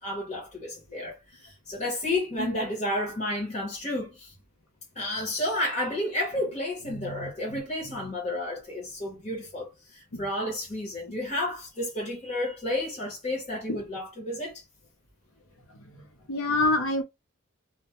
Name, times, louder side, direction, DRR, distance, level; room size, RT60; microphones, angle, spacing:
voice 1, 0.0-4.3 4.9-14.6, left 1 dB, 35° left, 0.8 m, -31 dB
voice 2, 6.9-7.6 10.1-10.2 13.7-13.8 15.9-16.0 16.3-17.0, left 2 dB, 80° left, 0.7 m, -28 dB
2.2 x 2.1 x 2.9 m
head